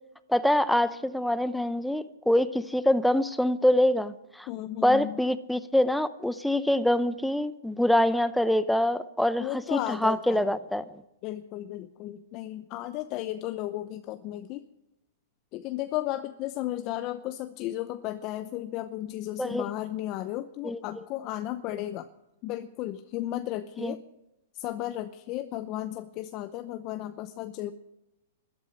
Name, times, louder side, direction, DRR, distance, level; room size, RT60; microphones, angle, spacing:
voice 1, 0.3-4.5 4.8-11.0 19.4-19.7 20.6-20.8 23.8-24.0, left 1 dB, ahead, 14 dB, 0.8 m, -25 dB
voice 2, 4.5-5.2 9.4-10.5 11.2-14.6 15.5-22.1 22.4-24.0 24.5-27.7, left 14 dB, 40° left, 10 dB, 0.7 m, -34 dB
13.0 x 12.0 x 8.4 m, 0.94 s
hypercardioid pair, 130°, 0 cm